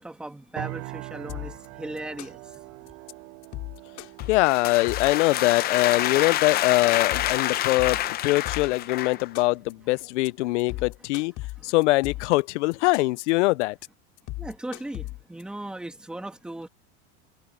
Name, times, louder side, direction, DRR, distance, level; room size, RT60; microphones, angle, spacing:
voice 1, 0.0-2.8 9.1-9.2 10.4-10.8 11.6-11.7 14.4-16.7, right 1 dB, ahead, 1.4 m, -38 dB
sound 1, 0.6-10.3, right 28 dB, 55° right, 5.3 m, -44 dB
sound 2, 1.3-1.7 2.0-2.6 2.9-3.1 3.4-5.2 5.6-6.1 6.4-6.7 7.0-8.8 9.1-9.7 10.0-10.3 10.6-12.4 12.7-13.3 13.6-13.9 14.2-15.4, left 19 dB, 45° left, 5.4 m, -36 dB
sound 3, 4.2-9.3, left 13 dB, 25° left, 0.7 m, -27 dB
voice 2, 4.3-11.3 11.6-13.8, left 21 dB, 85° left, 0.5 m, -23 dB
supercardioid pair, 155°, 35 cm